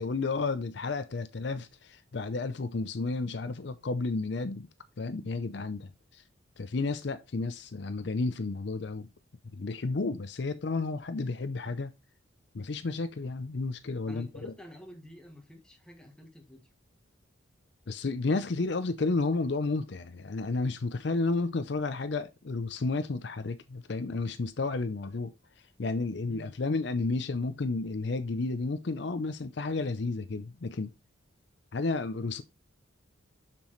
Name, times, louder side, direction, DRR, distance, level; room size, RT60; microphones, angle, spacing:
voice 1, 0.0-4.7 5.0-6.2 6.6-9.1 9.5-11.9 12.5-14.5 17.9-25.3 25.8-30.9 31.7-32.4, left 3 dB, 60° left, 0.5 m, -32 dB
voice 2, 14.1-16.7 26.3-26.5, left 1 dB, 5° left, 1.3 m, -49 dB
7.1 x 6.0 x 3.1 m
head